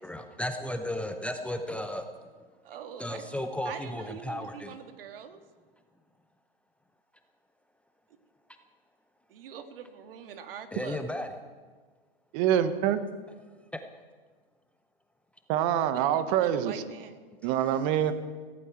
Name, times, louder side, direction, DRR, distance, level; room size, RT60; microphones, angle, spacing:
voice 1, 0.0-2.1 3.0-4.8 10.7-11.3 13.2-13.3 13.7-13.8, left 1 dB, 5° left, 6 dB, 0.7 m, -34 dB
voice 2, 2.6-3.3 3.7-5.4 9.3-11.1 15.9-17.2, right 8 dB, 65° right, 7 dB, 1.9 m, -44 dB
voice 3, 12.3-13.0 15.5-16.8 17.4-18.1, right 10 dB, 40° right, 11 dB, 1.3 m, -25 dB
17.5 x 15.5 x 4.6 m, 1.4 s
hypercardioid pair, 120°, 31 cm